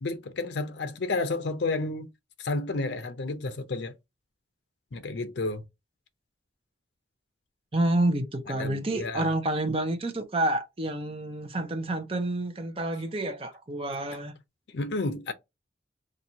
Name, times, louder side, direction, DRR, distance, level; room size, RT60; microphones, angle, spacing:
voice 1, 0.0-2.1 2.4-3.9 4.9-5.6 8.6-9.3 14.1-14.2 14.7-15.3, left 3 dB, 75° left, 0.6 m, -31 dB
voice 2, 7.7-14.3, right 1 dB, 30° right, 0.7 m, -29 dB
4.3 x 2.5 x 2.7 m
head